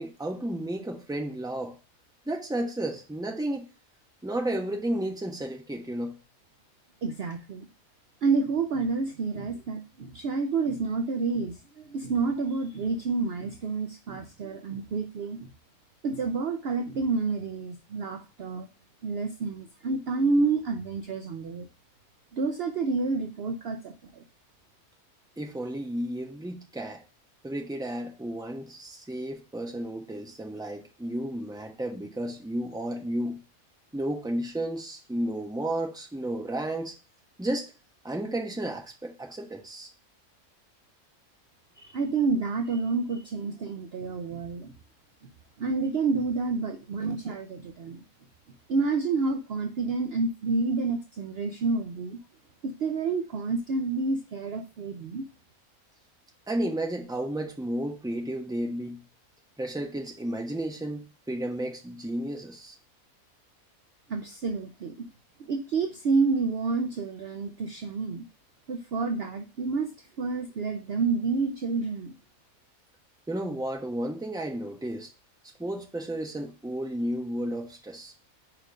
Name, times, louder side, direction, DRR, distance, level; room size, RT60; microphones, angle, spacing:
voice 1, 0.0-1.8 2.3-3.7 4.2-6.2 25.4-27.0 27.4-33.4 33.9-36.9 37.4-37.7 38.0-39.9 56.5-59.0 59.6-62.8 73.3-75.1 75.6-78.1, right 1 dB, 5° right, 1.0 m, -32 dB
voice 2, 7.0-7.7 8.2-15.5 16.0-18.7 19.0-21.7 22.3-24.2 41.7-44.7 45.6-48.0 48.7-52.2 52.6-55.3 64.1-65.1 65.5-68.2 68.7-69.9 70.2-72.1, right 4 dB, 55° right, 0.7 m, -29 dB
5.1 x 4.4 x 5.0 m
omnidirectional pair, 1.5 m